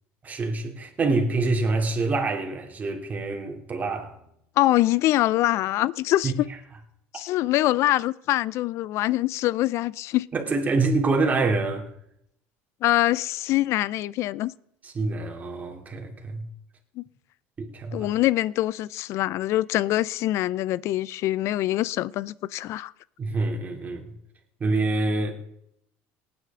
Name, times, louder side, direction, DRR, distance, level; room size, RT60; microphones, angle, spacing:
voice 1, 0.2-4.2 6.2-6.3 10.3-11.9 14.8-16.4 17.6-18.1 23.2-24.1 24.6-25.3, right 3 dB, 30° right, 2.9 m, -26 dB
voice 2, 4.6-6.5 7.1-10.3 12.8-14.5 17.0-17.1 17.9-22.9, left 15 dB, 60° left, 0.4 m, -24 dB
18.5 x 9.7 x 3.7 m
supercardioid pair, 90°, 5 cm